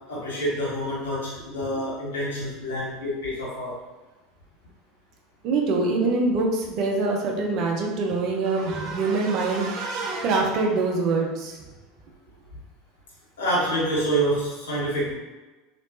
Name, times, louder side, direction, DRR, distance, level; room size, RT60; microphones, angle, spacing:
voice 1, 0.1-3.7 13.4-15.1, right 1 dB, 75° left, -7 dB, 1.5 m, -27 dB
voice 2, 5.4-11.6, right 3 dB, 55° right, 1 dB, 0.7 m, -24 dB
3.2 x 3.0 x 2.7 m, 1.2 s
hypercardioid pair, 80°, 0 cm